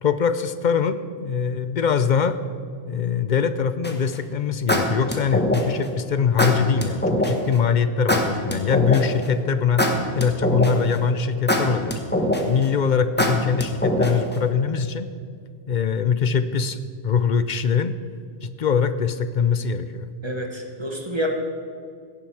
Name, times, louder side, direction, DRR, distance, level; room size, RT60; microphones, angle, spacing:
voice 1, 0.0-2.4 2.9-9.9 10.1-12.0 12.5-15.1 15.7-16.8 17.0-18.0 18.4-20.1, left 6 dB, 55° left, 12 dB, 0.7 m, -22 dB
sound 1, 3.8-4.1 4.7-5.8 6.4-7.3 8.1-9.2 9.8-10.9 11.5-12.6 13.2-14.3, left 1 dB, 10° left, 1.3 m, -22 dB
voice 2, 20.2-21.3, equal, 25° right, 2 dB, 1.4 m, -28 dB
16.0 x 10.5 x 4.7 m, 2.2 s
omnidirectional pair, 1.1 m